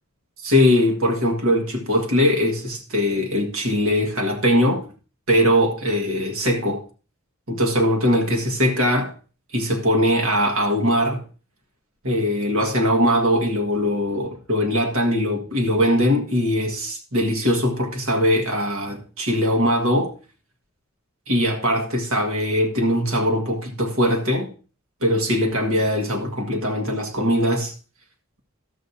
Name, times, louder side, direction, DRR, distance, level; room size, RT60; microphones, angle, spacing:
voice 1, 0.4-4.9 5.3-6.8 7.5-9.1 9.5-11.2 12.0-20.1 21.3-24.5 25.0-27.7, equal, 75° right, 1.6 m, -21 dB
12.5 x 7.9 x 2.8 m
head